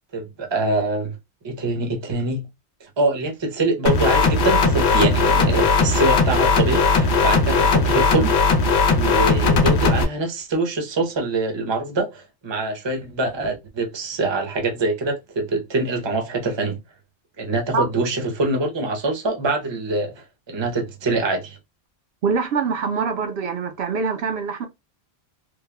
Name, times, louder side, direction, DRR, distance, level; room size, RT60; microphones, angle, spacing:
voice 1, 0.1-1.1 1.4-2.5 2.8-8.4 8.9-16.8 17.4-21.6, right 2 dB, 30° right, 0.7 m, -24 dB
sound 1, 3.9-10.0, left 4 dB, 80° left, 0.9 m, -18 dB
voice 2, 22.2-24.7, right 5 dB, 75° right, 0.9 m, -24 dB
3.3 x 2.1 x 2.2 m
omnidirectional pair, 1.1 m